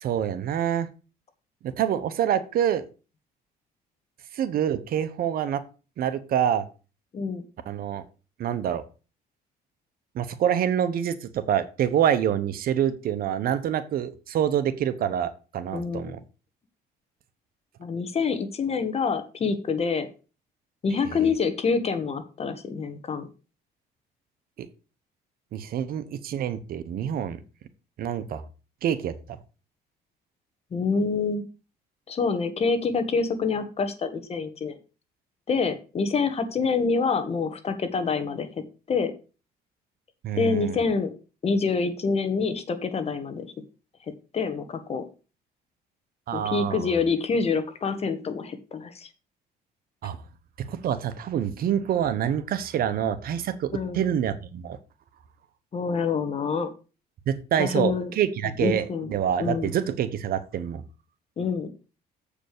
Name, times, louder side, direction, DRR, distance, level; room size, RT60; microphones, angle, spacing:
voice 1, 0.0-0.9 1.6-2.9 4.3-5.6 6.0-6.6 7.7-8.0 8.4-8.8 10.1-16.2 21.1-21.3 25.5-27.4 28.0-28.4 28.8-29.4 40.2-40.8 46.3-46.9 50.0-50.2 50.6-54.8 57.3-60.8, right 9 dB, 60° right, 12 dB, 1.0 m, -26 dB
voice 2, 15.7-16.1 17.8-20.1 20.8-23.3 30.7-31.4 32.1-34.7 35.5-39.1 40.3-41.1 41.4-43.5 44.3-45.0 46.3-49.1 53.7-54.1 55.7-56.7 57.6-58.1 58.6-59.1 59.4-59.7 61.4-61.7, left 5 dB, 35° left, 10 dB, 1.5 m, -26 dB
7.7 x 5.0 x 6.6 m, 0.33 s
cardioid pair, 110°, 17 cm